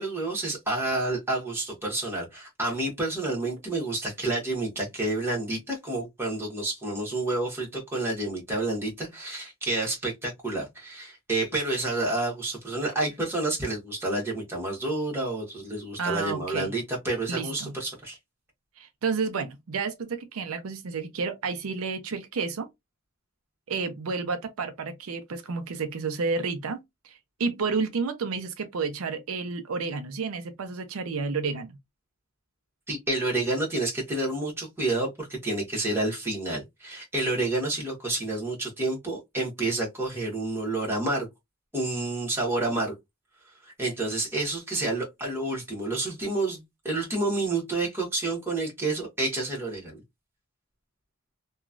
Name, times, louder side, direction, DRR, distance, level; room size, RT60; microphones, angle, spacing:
voice 1, 0.0-18.2 32.9-41.3 41.7-42.9 43.6-50.0, right 2 dB, 10° right, 1.2 m, -29 dB
voice 2, 16.0-16.7 17.3-17.7 18.8-22.7 23.7-31.7, right 4 dB, 85° right, 0.5 m, -31 dB
2.9 x 2.3 x 2.4 m
head